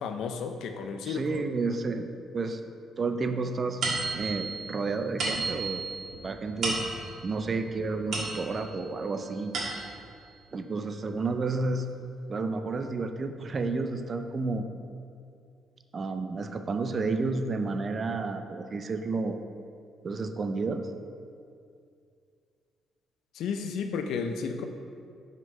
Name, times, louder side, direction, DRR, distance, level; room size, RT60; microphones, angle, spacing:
voice 1, 0.0-1.4 23.3-24.6, left 5 dB, 75° left, 6 dB, 0.5 m, -32 dB
voice 2, 1.0-2.6 3.0-3.8 4.1-5.9 6.2-6.8 7.2-9.5 10.5-11.9 12.3-14.6 15.9-19.4 20.0-20.9, right 3 dB, 30° right, 7 dB, 0.4 m, -31 dB
sound 1, 3.8-8.8 9.2-10.1, right 3 dB, 50° right, 1.6 m, -34 dB
6.0 x 5.1 x 5.3 m, 2.3 s
cardioid pair, 160°, 0 cm